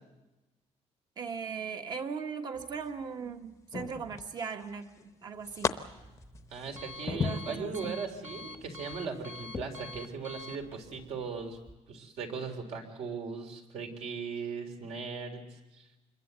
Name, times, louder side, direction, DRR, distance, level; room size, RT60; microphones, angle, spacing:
voice 1, 1.2-5.8 7.1-8.0, right 5 dB, 35° right, 7 dB, 1.4 m, -38 dB
sound 1, 2.6-3.0 3.7-4.6 5.0-5.7 6.2-8.0 8.5-8.7 9.5-9.7, left 5 dB, 25° left, 0.8 m, -36 dB
Alarm, 5.3-11.7, left 2 dB, 20° right, 1.2 m, -48 dB
voice 2, 6.5-11.6 11.9-15.4 15.7-15.9, right 5 dB, 65° right, 5 dB, 3.6 m, -38 dB
26.5 x 21.5 x 8.2 m, 1.1 s
cardioid pair, 175°, 12 cm